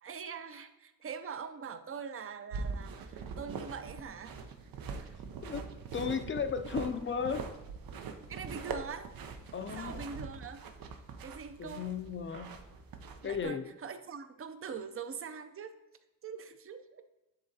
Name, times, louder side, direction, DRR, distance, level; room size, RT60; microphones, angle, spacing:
voice 1, 0.0-4.3 5.0-5.1 8.3-9.1 9.8-10.6 11.2-11.9 13.2-15.8 16.2-17.0, right 6 dB, 40° right, 10 dB, 0.5 m, -43 dB
sound 1, 2.5-13.4, right 5 dB, 85° right, 0.7 m, -43 dB
voice 2, 5.9-7.4 9.5-10.0 11.6-12.5 13.2-13.7, left 6 dB, 35° left, 9 dB, 0.4 m, -35 dB
10.5 x 3.8 x 2.7 m, 1.0 s
wide cardioid pair, 140°, 34 cm